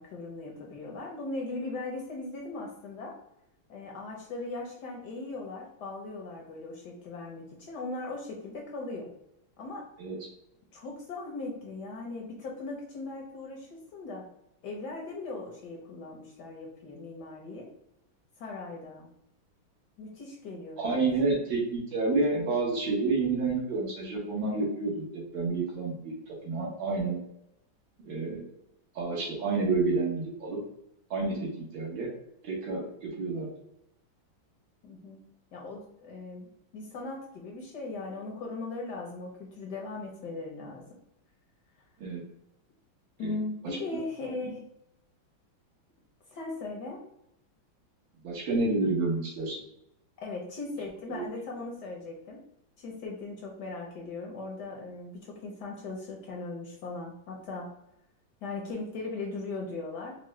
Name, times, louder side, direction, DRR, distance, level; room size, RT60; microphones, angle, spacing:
voice 1, 0.0-3.1 3.7-9.1 9.6-9.9 10.7-14.2 14.6-17.7 18.4-19.1 20.0-21.3 34.8-35.2 35.5-40.8 43.2-44.7 46.3-47.0 50.2-52.4 52.8-57.7 58.4-60.2, left 3 dB, 65° left, 0 dB, 1.1 m, -39 dB
voice 2, 20.8-27.2 28.1-28.4 29.0-30.6 31.1-32.1 32.4-33.5 42.0-42.2 43.2-43.4 48.2-49.6 51.1-51.2, right 3 dB, 70° right, -2 dB, 1.9 m, -29 dB
4.5 x 2.2 x 3.1 m, 0.80 s
omnidirectional pair, 2.2 m